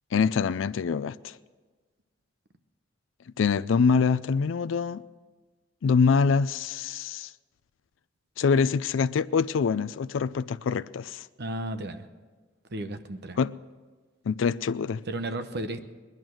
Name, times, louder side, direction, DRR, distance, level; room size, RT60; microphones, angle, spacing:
voice 1, 0.1-1.4 3.4-5.0 5.8-7.3 8.4-11.3 13.4-13.5 14.3-15.0, left 5 dB, 80° left, 0.4 m, -25 dB
voice 2, 11.4-12.1 12.7-13.4 15.1-15.8, right 1 dB, 60° right, 0.9 m, -33 dB
20.0 x 10.5 x 6.3 m
head